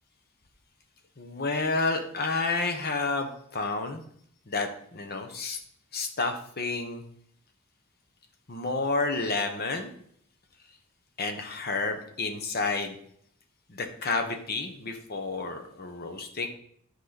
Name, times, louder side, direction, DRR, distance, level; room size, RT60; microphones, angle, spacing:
voice 1, 1.2-4.0 4.5-5.6 5.9-7.0 8.5-9.9 11.2-13.0 13.7-16.5, left 3 dB, 50° left, 5 dB, 1.1 m, -30 dB
10.5 x 5.0 x 4.0 m, 0.66 s
head